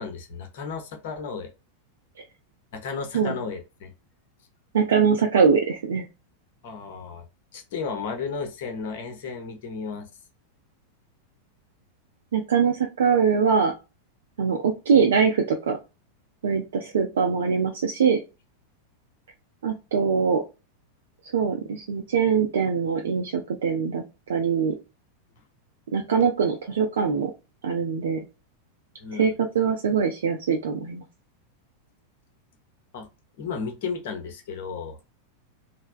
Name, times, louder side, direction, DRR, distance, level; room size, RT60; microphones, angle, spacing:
voice 1, 0.0-1.5 2.7-3.9 6.6-7.2 7.5-10.1 29.0-29.3 32.9-33.1 33.4-35.0, left 5 dB, 50° left, 5 dB, 0.7 m, -33 dB
voice 2, 4.7-6.0 12.3-13.7 14.4-15.8 16.4-18.2 19.6-20.4 21.3-24.0 24.3-24.7 25.9-27.3 27.6-28.2 29.1-31.0, right 6 dB, 60° right, 3 dB, 0.4 m, -22 dB
3.3 x 2.0 x 2.3 m, 0.27 s
figure-of-eight pair, 90°, 0 cm